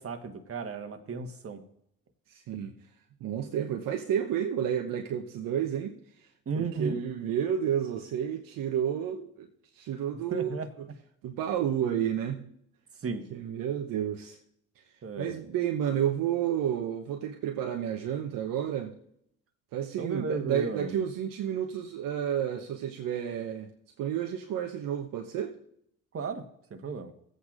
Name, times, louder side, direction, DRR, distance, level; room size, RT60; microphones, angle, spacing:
voice 1, 0.0-1.6 6.4-7.0 10.3-10.7 13.0-13.3 15.0-15.4 20.0-20.9 26.1-26.4 26.7-27.1, right 4 dB, 35° right, 1.4 m, -34 dB
voice 2, 2.3-2.7 3.2-5.9 6.5-9.5 9.7-10.5 11.2-12.4 13.3-14.4 14.8-14.9 15.2-18.9 19.7-23.7 24.0-25.5, right 9 dB, 60° right, 1.0 m, -31 dB
17.5 x 8.3 x 2.5 m
hypercardioid pair, 50°, 39 cm